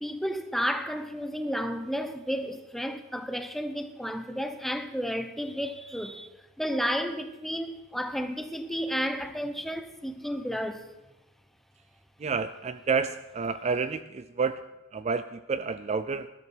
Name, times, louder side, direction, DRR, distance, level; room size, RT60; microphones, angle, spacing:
voice 1, 0.0-6.3 6.6-10.9, equal, ahead, 0.9 m, -32 dB
voice 2, 12.2-14.6 14.9-16.3, right 5 dB, 30° right, 0.4 m, -29 dB
19.5 x 13.0 x 4.5 m
head